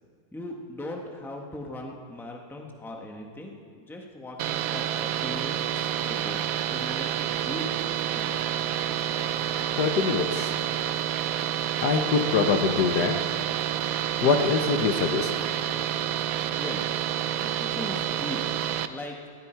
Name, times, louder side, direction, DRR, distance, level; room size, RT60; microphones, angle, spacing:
voice 1, 0.3-6.4 6.7-7.7 8.1-8.4 16.6-16.9 17.3-18.5 18.9-19.2, left 1 dB, ahead, 1 dB, 1.2 m, -39 dB
sound 1, 4.4-18.9, right 10 dB, 75° right, 0.8 m, -29 dB
voice 2, 9.8-10.5 11.8-13.2 14.2-15.3, left 5 dB, 65° left, 5 dB, 1.3 m, -24 dB
19.0 x 15.0 x 4.6 m, 2.1 s
omnidirectional pair, 2.1 m